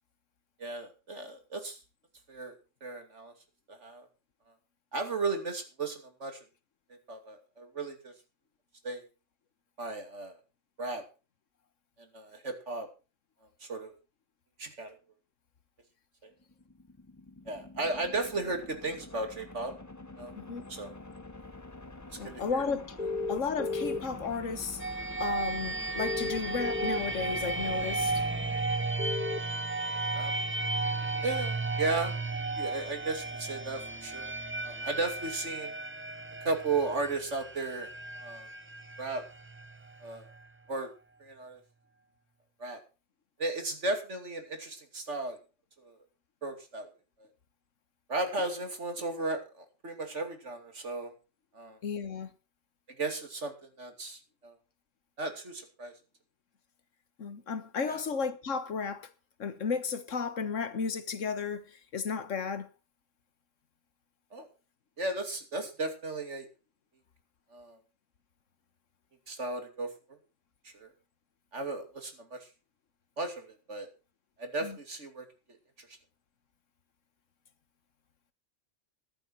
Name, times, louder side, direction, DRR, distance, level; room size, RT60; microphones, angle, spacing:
voice 1, 0.6-1.8 2.3-3.3 3.7-4.1 4.9-6.4 7.1-8.1 8.8-9.0 9.8-10.4 10.8-11.0 12.0-12.9 13.6-13.9 14.6-15.0 16.2-16.3 17.5-19.7 20.2-20.3 20.7-20.9 22.2-22.7 30.1-30.3 31.2-32.1 32.6-34.3 34.6-35.7 36.4-37.9 38.2-38.5 39.0-39.2 40.0-40.3 40.7-40.9 41.2-41.6 42.6-42.8 43.4-45.4 45.8-46.0 46.4-46.9 47.2-47.3 48.1-51.1 51.5-51.8 53.0-54.6 55.2-55.9 57.9-58.0 64.3-64.5 65.0-66.5 67.5-67.8 69.3-70.2 70.6-70.9 71.5-72.5 73.2-73.9 74.4-75.3 75.8-75.9, right 3 dB, 70° right, 3.0 m, -35 dB
sound 1, 16.3-29.5, left 2 dB, 15° left, 0.9 m, -47 dB
voice 2, 22.2-22.9 23.3-24.8 25.2-28.2 51.8-52.3 57.2-59.1 59.4-62.7 74.6-74.8, left 5 dB, 85° left, 1.7 m, -34 dB
sound 2, 23.0-24.0 26.0-27.0 29.0-29.4, left 3 dB, 40° left, 1.6 m, -33 dB
sound 3, 24.8-40.4, right 3 dB, 15° right, 0.5 m, -34 dB
14.0 x 11.5 x 4.6 m
omnidirectional pair, 1.3 m